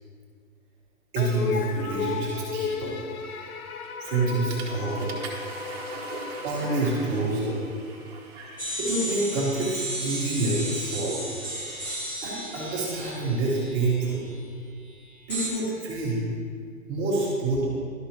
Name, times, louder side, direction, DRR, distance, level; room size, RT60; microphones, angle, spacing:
voice 1, 1.1-3.0 4.0-5.2 6.4-7.5 8.3-11.3 12.2-14.3 15.3-16.2 16.9-17.7, right 2 dB, 20° right, -6 dB, 1.5 m, -27 dB
sound 1, 1.2-7.7, left 5 dB, 90° left, 0.7 m, -34 dB
Water / Toilet flush, 3.8-4.1 4.5-12.4, right 4 dB, 45° right, 1.4 m, -42 dB
sound 2, 8.6-14.3 15.3-15.5, right 1 dB, 5° left, 0.6 m, -34 dB
12.0 x 5.4 x 2.9 m, 2.1 s
hypercardioid pair, 150°, 42 cm